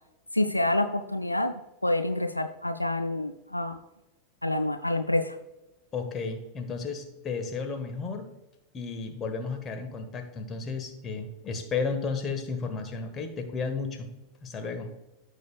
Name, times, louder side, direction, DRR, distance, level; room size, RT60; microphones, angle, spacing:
voice 1, 0.3-1.5 1.8-3.8 4.4-5.4, left 1 dB, 85° left, 8 dB, 0.4 m, -27 dB
voice 2, 5.9-8.3 8.7-14.1 14.4-14.9, left 4 dB, 25° left, 6 dB, 1.3 m, -33 dB
14.0 x 5.2 x 2.3 m, 0.97 s
figure-of-eight pair, 90°, 0 cm